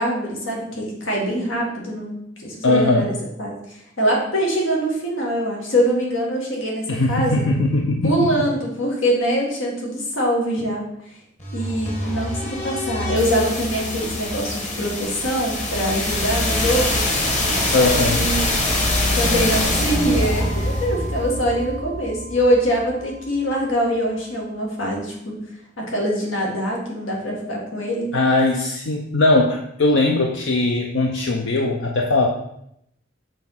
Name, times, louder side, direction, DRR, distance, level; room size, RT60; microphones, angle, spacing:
voice 1, 0.0-3.1 3.4-7.5 8.0-10.8 11.5-17.0 18.1-18.5 19.2-25.4 25.8-28.1, equal, 85° left, -2 dB, 1.9 m, -23 dB
voice 2, 2.6-3.1 6.9-8.3 17.7-18.3 28.1-32.3, left 2 dB, 65° left, 1 dB, 0.7 m, -19 dB
sound 1, 11.4-23.3, left 1 dB, 40° left, 1.5 m, -24 dB
6.5 x 3.6 x 5.7 m, 0.77 s
head